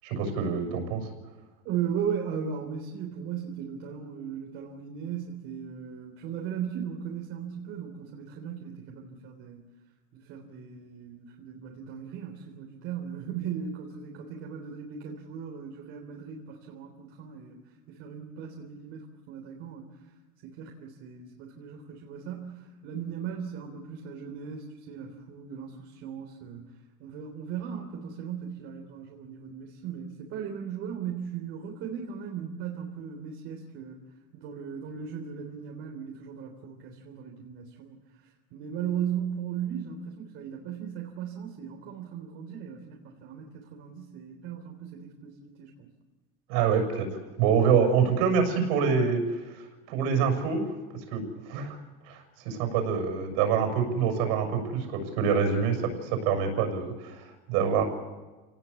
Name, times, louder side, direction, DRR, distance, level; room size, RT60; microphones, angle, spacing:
voice 1, 0.0-1.1 46.5-47.1 47.4-50.7 51.1-51.8 52.0-57.8, right 6 dB, 65° right, 5 dB, 6.7 m, -26 dB
voice 2, 1.6-9.6 10.1-20.1 20.4-34.0 34.3-45.9, right 8 dB, 50° right, 1 dB, 3.5 m, -37 dB
29.0 x 18.5 x 8.3 m, 1.2 s
cardioid pair, 165°, 29 cm